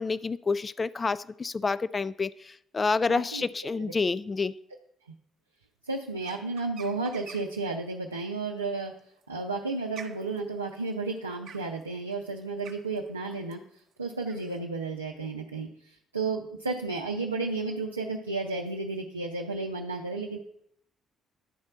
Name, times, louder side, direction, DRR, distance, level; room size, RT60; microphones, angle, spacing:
voice 1, 0.0-4.5, left 4 dB, 30° left, 16 dB, 0.3 m, -28 dB
voice 2, 3.1-3.4 5.9-8.9 9.3-13.6 14.0-20.4, right 3 dB, 85° right, 0 dB, 0.5 m, -32 dB
sound 1, 6.2-7.6 9.0-14.6, right 6 dB, 55° right, 1.0 m, -48 dB
10.5 x 4.3 x 5.9 m, 0.72 s
figure-of-eight pair, 45°, 0 cm